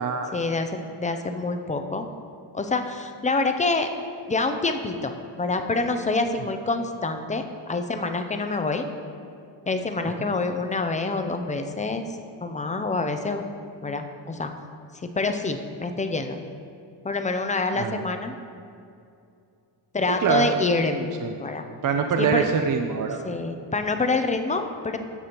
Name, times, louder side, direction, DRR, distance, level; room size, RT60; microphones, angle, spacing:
voice 1, 0.3-2.1 2.5-3.9 4.3-8.9 9.7-12.1 12.4-13.4 13.8-14.5 15.0-16.4 17.0-18.4 19.9-21.1 21.4-21.6 22.2-22.5 23.2-25.0, left 3 dB, 20° left, 6 dB, 0.3 m, -26 dB
voice 2, 20.1-20.5 21.2-21.4 21.8-23.2, right 6 dB, 50° right, 5 dB, 0.5 m, -24 dB
14.0 x 6.7 x 2.9 m, 2.5 s
wide cardioid pair, 175°, 43 cm